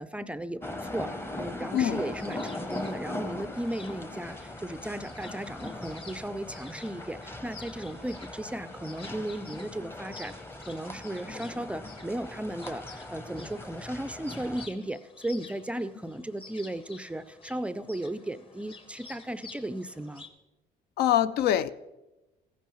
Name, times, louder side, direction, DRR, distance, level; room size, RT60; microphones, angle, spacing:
voice 1, 0.0-10.3 10.6-20.2, right 1 dB, 5° right, 13 dB, 0.4 m, -36 dB
sound 1, 0.6-14.7, left 1 dB, 15° left, 0.8 m, -40 dB
sound 2, 2.0-20.3, left 4 dB, 30° left, 1.1 m, -51 dB
voice 2, 21.0-21.7, left 11 dB, 70° left, 15 dB, 0.5 m, -24 dB
15.0 x 10.0 x 3.1 m, 1.0 s
cardioid pair, 110°, 17 cm